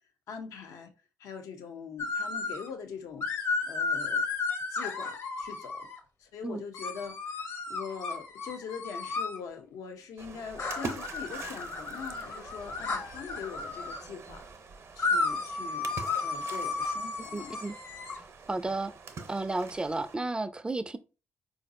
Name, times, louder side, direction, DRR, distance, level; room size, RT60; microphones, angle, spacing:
voice 1, 0.3-0.9 1.2-4.2 4.7-5.9 6.2-14.5 15.0-15.9 16.2-17.6, left 6 dB, 75° left, 0.6 m, -42 dB
sound 1, 2.0-2.7 3.2-6.0 6.7-9.4 10.6-14.0 15.0-18.2, left 4 dB, 60° left, 1.0 m, -33 dB
Splash splatter, 10.2-20.1, right 4 dB, 55° right, 0.6 m, -45 dB
voice 2, 17.3-17.8 18.2-18.9 19.3-21.0, right 2 dB, 15° right, 0.4 m, -33 dB
3.9 x 2.5 x 2.5 m
supercardioid pair, 50°, 6 cm